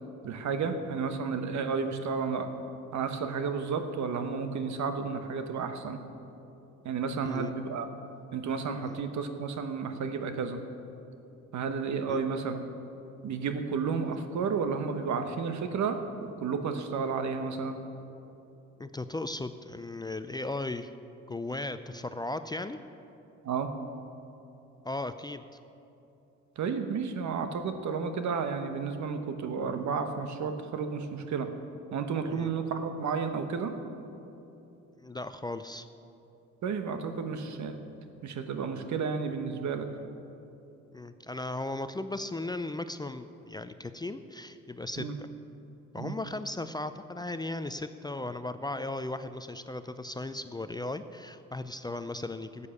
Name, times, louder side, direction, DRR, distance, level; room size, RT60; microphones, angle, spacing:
voice 1, 0.2-2.5 2.9-6.0 6.8-7.9 8.3-10.6 11.5-12.6 13.2-17.8 23.4-23.7 26.6-31.5 31.9-33.7 36.6-37.8 38.2-39.9 45.0-45.2 46.0-46.2, right 5 dB, 70° right, 8 dB, 1.2 m, -32 dB
voice 2, 18.8-20.9 21.3-22.8 24.8-25.4 32.3-32.5 35.0-35.9 40.9-45.1 45.9-52.7, left 2 dB, 15° left, 10 dB, 0.4 m, -36 dB
13.5 x 8.4 x 7.0 m, 2.8 s
cardioid pair, 90°, 30 cm